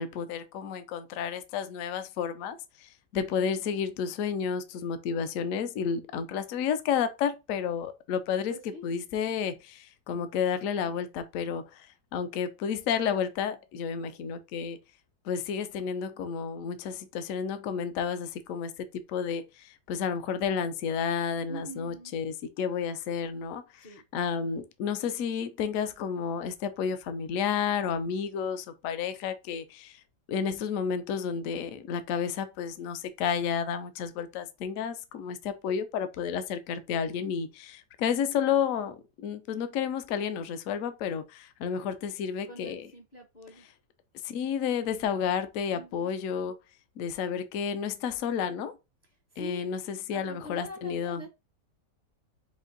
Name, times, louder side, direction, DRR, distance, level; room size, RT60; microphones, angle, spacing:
voice 1, 0.0-14.8 15.2-23.9 24.1-30.0 30.3-42.9 44.2-46.5 47.0-48.8 49.4-51.3, left 7 dB, 65° left, 0.9 m, -31 dB
voice 2, 8.5-8.8 21.5-22.1 23.8-24.0 42.4-43.7 45.7-46.1 49.3-49.7 50.1-51.3, equal, 45° left, 0.5 m, -44 dB
4.5 x 2.5 x 3.8 m
omnidirectional pair, 1.9 m